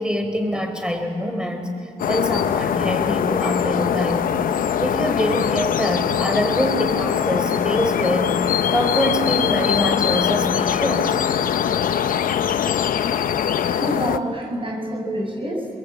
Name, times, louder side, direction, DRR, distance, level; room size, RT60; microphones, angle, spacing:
voice 1, 0.0-1.7 2.1-4.3 4.8-8.3 8.7-11.2, equal, 5° right, 5 dB, 4.5 m, -24 dB
sound 1, 2.0-14.2, left 9 dB, 90° left, 0.7 m, -22 dB
voice 2, 13.6-15.7, right 1 dB, 40° right, 2 dB, 6.7 m, -27 dB
22.5 x 21.5 x 8.7 m, 2.5 s
cardioid pair, 50°, 14 cm